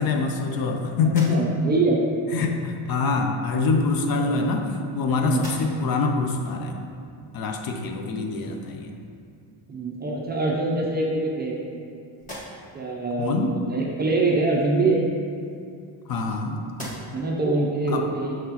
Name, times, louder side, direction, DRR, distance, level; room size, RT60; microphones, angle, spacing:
voice 1, 0.0-1.4 2.3-6.8 7.3-8.9 13.2-13.5 16.1-16.6 17.9-18.1, left 4 dB, 50° left, 3 dB, 0.6 m, -25 dB
sound 1, 1.0-1.9 3.0-3.2 4.1-5.0 5.3-6.0 6.5-6.6 9.3-9.4 9.8-10.5 11.1-11.8 12.1-12.9 14.9-16.3 16.7-17.4, equal, 15° left, 1.2 m, -43 dB
voice 2, 1.3-2.0 4.1-4.3 5.2-5.5 9.7-11.6 12.7-15.0 17.1-18.4, right 3 dB, 20° right, -2 dB, 0.5 m, -24 dB
6.5 x 5.8 x 2.9 m, 2.4 s
cardioid pair, 160°, 47 cm